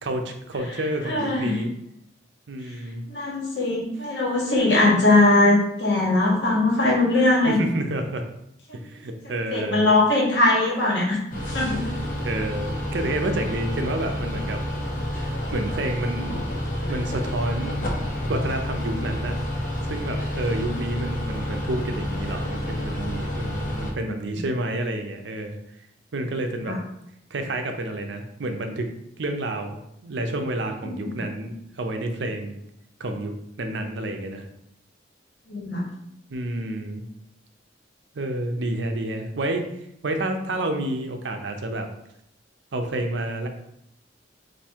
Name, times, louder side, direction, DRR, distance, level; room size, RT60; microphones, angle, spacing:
voice 1, 0.0-1.7 2.5-3.0 7.4-8.2 8.8-9.9 11.8-14.6 15.1-16.6 16.9-17.8 18.3-19.4 19.9-25.6 26.1-26.8 27.3-28.9 29.2-32.6 33.0-33.3 33.6-34.4 36.3-37.1 38.1-39.7 40.0-41.9 42.7-43.5, right 1 dB, 70° right, 5 dB, 0.5 m, -29 dB
voice 2, 1.0-1.6 3.1-7.6 9.2-11.2 11.5-11.9 26.5-26.8 30.8-31.2 35.5-35.8, left 2 dB, 70° left, -4 dB, 1.6 m, -21 dB
sound 1, 11.3-23.9, left 1 dB, 45° left, 0.7 m, -29 dB
4.3 x 2.6 x 3.5 m, 0.78 s
head